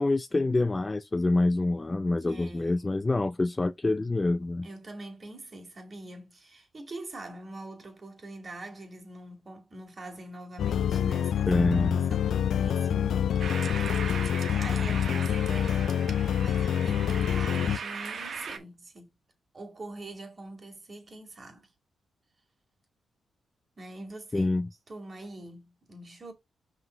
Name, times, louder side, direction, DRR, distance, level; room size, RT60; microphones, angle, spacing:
voice 1, 0.0-4.7 11.5-12.0 24.3-24.7, left 2 dB, 20° left, 0.4 m, -26 dB
voice 2, 2.2-3.0 4.6-11.5 12.0-13.7 14.5-15.9 16.4-19.1 19.5-21.7 23.8-24.5 24.9-26.3, right 2 dB, 30° right, 2.4 m, -44 dB
sound 1, 10.6-17.8, left 9 dB, 75° left, 0.4 m, -26 dB
sound 2, 13.4-18.6, right 5 dB, 55° right, 1.4 m, -38 dB
5.7 x 3.9 x 5.1 m
cardioid pair, 105°, 0 cm